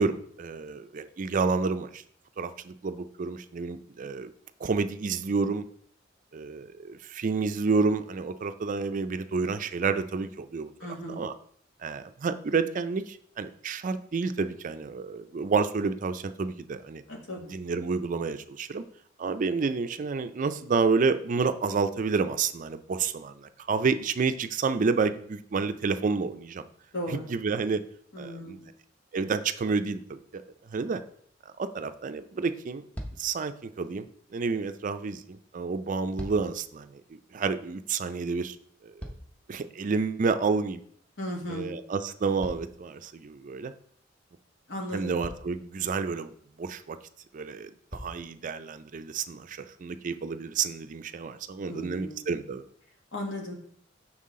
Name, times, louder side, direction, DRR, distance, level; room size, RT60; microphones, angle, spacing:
voice 1, 0.0-2.0 2.4-4.3 4.6-5.6 6.3-10.7 11.1-11.3 11.8-17.0 17.4-18.8 19.2-26.7 27.1-27.8 28.2-28.6 29.1-30.4 30.7-31.0 31.6-32.8 33.2-38.6 38.8-38.9 39.5-40.8 41.5-43.7 44.9-46.3 46.6-47.0 47.3-52.6, right 4 dB, 45° right, 10 dB, 0.4 m, -29 dB
voice 2, 10.8-11.2 17.1-18.0 26.9-27.2 28.1-28.7 41.2-41.7 44.7-45.1 51.6-52.3 53.1-53.6, equal, 80° left, 0 dB, 1.7 m, -36 dB
sound 1, 32.9-33.4 35.8-36.6 38.5-39.6 42.4-43.4 44.6-44.7 45.2-45.7 47.1-47.2 47.9-48.3 49.1-49.2, equal, 10° left, 0.7 m, -42 dB
6.1 x 5.6 x 3.7 m, 0.62 s
head